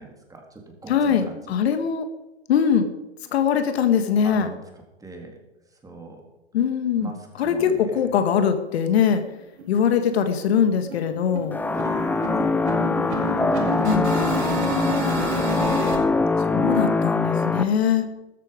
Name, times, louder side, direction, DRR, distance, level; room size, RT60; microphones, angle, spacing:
voice 1, 0.0-1.4 4.2-4.6 5.0-5.3 5.8-6.2 7.0-7.9 11.7-15.0, right 3 dB, 10° right, 2 dB, 3.4 m, -40 dB
voice 2, 0.9-2.1 2.5-2.9 3.3-4.5 6.5-9.2 9.7-11.6 13.8-14.1 16.4-18.1, left 7 dB, 65° left, 8 dB, 1.8 m, -22 dB
sound 1, 8.7-8.8 9.1-9.2 9.6-9.8 10.0-16.0, right 2 dB, 70° right, 5.5 m, -30 dB
sound 2, 11.5-17.6, left 3 dB, 5° left, 0.6 m, -23 dB
13.5 x 13.0 x 5.2 m, 0.97 s
hypercardioid pair, 125°, 34 cm